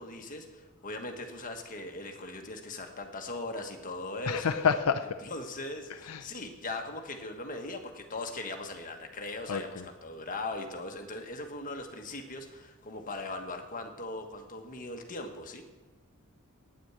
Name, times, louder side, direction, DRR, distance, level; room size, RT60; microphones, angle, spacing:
voice 1, 0.0-4.5 5.2-15.6, left 2 dB, 40° left, 4 dB, 1.4 m, -39 dB
voice 2, 4.3-5.1 6.1-6.2 9.5-9.8, left 6 dB, 80° left, 8 dB, 0.5 m, -28 dB
9.5 x 8.9 x 8.1 m, 1.2 s
head